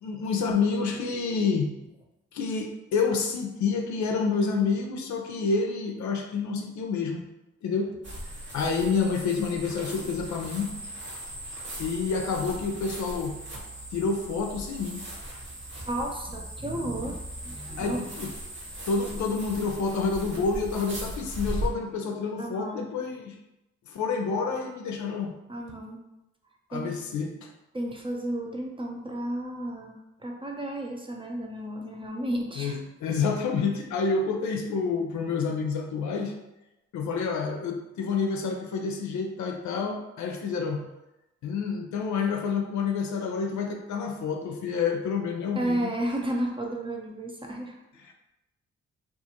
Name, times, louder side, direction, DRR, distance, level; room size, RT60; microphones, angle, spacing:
voice 1, 0.0-1.7 2.3-7.2 7.6-8.0 8.5-10.8 11.8-13.4 13.9-15.0 17.8-18.3 18.9-23.4 23.9-25.4 26.7-27.5 32.6-36.3 36.9-40.8 41.4-45.9 48.1-48.2, left 5 dB, 75° left, 3 dB, 0.5 m, -28 dB
sound 1, 8.0-21.7, right 1 dB, 40° right, 1.1 m, -38 dB
voice 2, 15.8-18.1 22.4-22.9 25.5-26.0 26.7-26.9 27.7-32.8 45.5-47.8, right 1 dB, 15° right, 0 dB, 0.6 m, -32 dB
2.5 x 2.5 x 2.8 m, 0.93 s
supercardioid pair, 50°, 29 cm